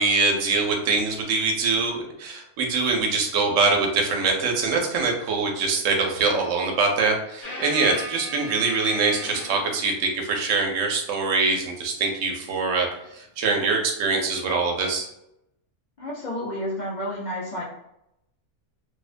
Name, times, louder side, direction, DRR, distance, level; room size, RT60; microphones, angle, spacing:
voice 1, 0.0-12.9 13.1-15.1, right 4 dB, 90° right, 2 dB, 0.9 m, -23 dB
sound 1, 7.4-9.9 12.9-13.1 14.9-15.0, equal, 75° left, 1.0 m, -36 dB
voice 2, 16.0-17.6, equal, 50° left, -6 dB, 0.5 m, -30 dB
2.5 x 2.1 x 2.4 m, 0.81 s
omnidirectional pair, 1.3 m